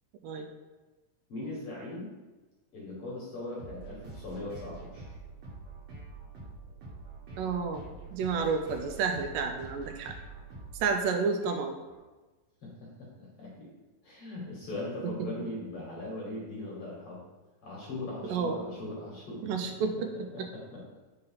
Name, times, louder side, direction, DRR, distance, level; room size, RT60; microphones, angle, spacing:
voice 1, 1.3-2.1 2.7-5.2 12.6-13.7 14.0-17.2 17.6-19.7 20.0-20.8, left 2 dB, 55° left, -5 dB, 1.8 m, -40 dB
sound 1, 3.6-12.0, right 3 dB, 55° right, 2.3 m, -46 dB
voice 2, 7.4-10.1 10.8-11.8 18.2-18.6 19.4-20.1 20.4-20.5, right 5 dB, 80° right, 5 dB, 2.1 m, -30 dB
5.3 x 3.9 x 5.7 m, 1.2 s
omnidirectional pair, 3.9 m